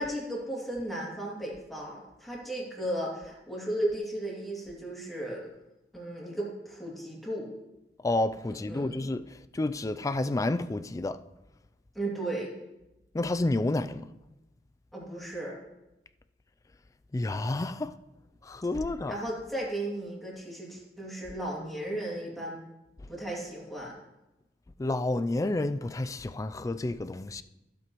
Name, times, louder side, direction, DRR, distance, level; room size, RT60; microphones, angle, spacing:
voice 1, 0.0-5.5 5.9-7.5 8.5-9.0 11.9-12.5 14.9-15.6 19.1-22.6 23.1-23.9, right 1 dB, ahead, 2.5 m, -35 dB
voice 2, 8.0-9.3 9.5-11.2 13.1-14.0 17.1-17.9 18.5-19.2 24.8-27.4, left 2 dB, 20° left, 0.3 m, -30 dB
15.0 x 7.8 x 3.1 m
head